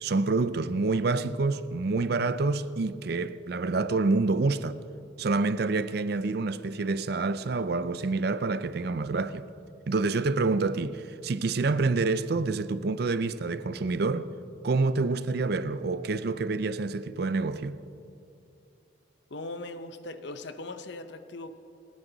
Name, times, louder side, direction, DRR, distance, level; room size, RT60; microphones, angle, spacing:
voice 1, 0.0-4.8 5.2-9.4 9.9-14.3 14.6-17.8, right 3 dB, 55° right, 0.5 m, -27 dB
voice 2, 19.3-21.5, left 2 dB, 65° left, 0.8 m, -39 dB
28.5 x 9.7 x 4.0 m
head